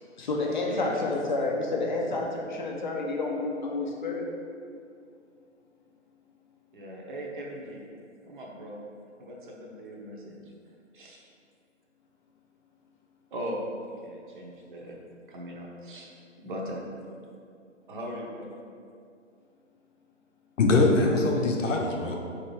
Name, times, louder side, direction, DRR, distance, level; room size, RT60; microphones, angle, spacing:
voice 1, 0.2-4.2, left 2 dB, 40° left, -1 dB, 0.4 m, -29 dB
voice 2, 6.7-7.8 8.3-8.8 9.2-10.4 10.9-11.2 13.3-15.0 15.3-16.1 16.4-16.8 17.9-18.5, equal, 45° right, -1 dB, 0.6 m, -38 dB
voice 3, 20.6-22.2, left 2 dB, 75° left, 1 dB, 0.7 m, -22 dB
4.5 x 2.6 x 3.1 m, 2.4 s
hypercardioid pair, 145°, 37 cm